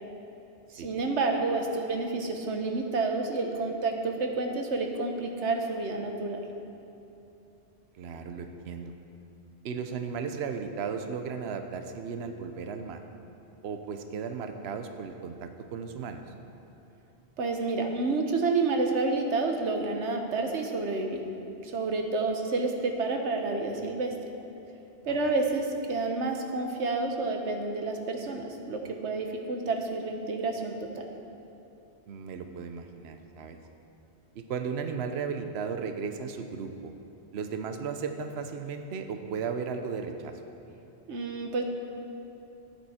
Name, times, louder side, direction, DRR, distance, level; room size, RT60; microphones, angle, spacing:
voice 1, 0.7-6.4 17.4-21.2 21.6-24.1 25.0-31.1 41.1-41.6, right 3 dB, 85° right, 3 dB, 1.3 m, -29 dB
voice 2, 7.9-8.9 9.6-13.0 13.6-16.2 32.1-33.6 34.3-36.9 37.3-40.4, right 6 dB, 70° right, 6 dB, 0.9 m, -35 dB
13.0 x 9.1 x 4.3 m, 2.9 s
omnidirectional pair, 1.1 m